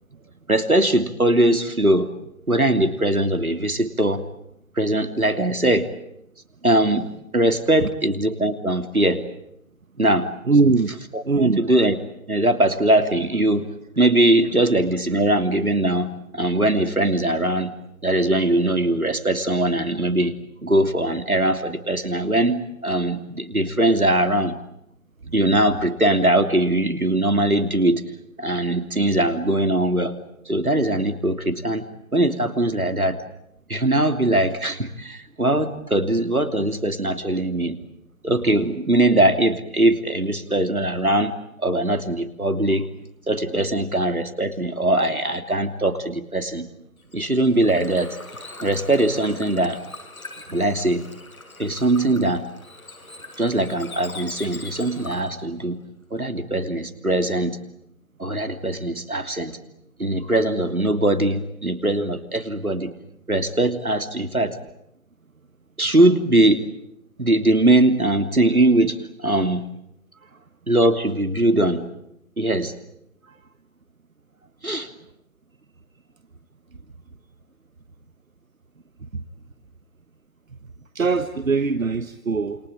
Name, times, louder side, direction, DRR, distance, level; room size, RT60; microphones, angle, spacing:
voice 1, 0.5-2.1 2.5-4.2 4.8-5.9 6.6-7.1 7.3-9.2 10.0-10.3 11.1-12.0 12.3-13.7 14.0-16.1 16.3-17.7 18.0-20.3 20.6-24.5 25.3-28.0 28.4-30.1 30.5-31.8 32.1-33.2 33.7-37.8 38.2-41.3 41.6-42.9 43.3-46.6 47.1-48.2 48.6-49.8 50.5-51.0 51.6-52.4 53.4-55.8 56.1-57.6 58.2-59.6 60.0-62.9 63.3-64.6 65.8-66.6 67.2-69.0 69.2-69.6 70.7-71.8 72.4-72.7 74.6-74.9, right 1 dB, 90° right, 8 dB, 3.1 m, -21 dB
voice 2, 10.5-10.9 11.2-11.7 70.2-70.3 73.2-73.4 79.1-79.2 80.9-82.6, right 4 dB, 70° right, 10 dB, 1.4 m, -21 dB
Bird / Water, 47.0-55.4, left 2 dB, 80° left, 6.6 m, -41 dB
28.5 x 23.5 x 8.8 m, 0.77 s
figure-of-eight pair, 145°, 42 cm